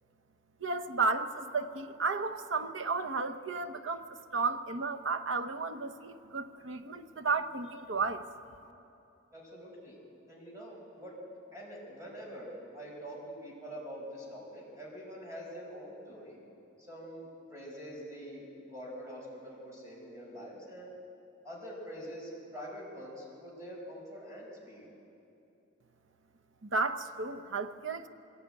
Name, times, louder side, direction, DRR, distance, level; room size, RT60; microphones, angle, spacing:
voice 1, 0.6-8.2 26.6-28.1, right 4 dB, 70° right, 8 dB, 0.9 m, -33 dB
voice 2, 9.3-10.0 10.3-11.2 11.5-16.4 16.8-20.9 21.4-24.9, equal, 15° right, -4 dB, 5.7 m, -45 dB
21.5 x 16.5 x 9.1 m, 2.8 s
head